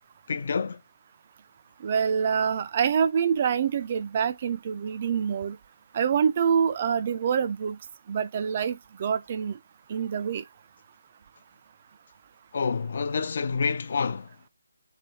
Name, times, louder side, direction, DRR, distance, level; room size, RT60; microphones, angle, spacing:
voice 1, 0.3-0.8 12.5-14.4, left 5 dB, 50° left, 0.3 m, -28 dB
voice 2, 1.8-5.6 5.9-7.8 8.1-9.6 9.9-10.4, right 7 dB, 35° right, 0.3 m, -26 dB
3.2 x 3.0 x 4.1 m
figure-of-eight pair, 160°, 0 cm